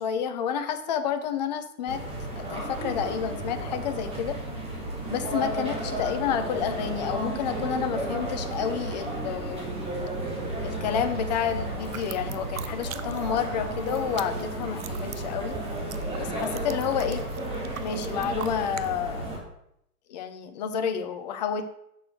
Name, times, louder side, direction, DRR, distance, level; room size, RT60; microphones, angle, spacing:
voice 1, 0.0-2.0 2.4-4.4 5.1-9.8 10.6-15.6 16.2-17.2 17.8-19.3 20.1-21.7, left 8 dB, 30° left, 8 dB, 0.7 m, -30 dB
sound 1, 1.9-19.4, right 1 dB, 10° right, 1.7 m, -33 dB
sound 2, 11.8-13.5 13.7-18.9, right 10 dB, 60° right, 0.6 m, -42 dB
6.5 x 4.8 x 6.2 m, 0.78 s
figure-of-eight pair, 120°, 46 cm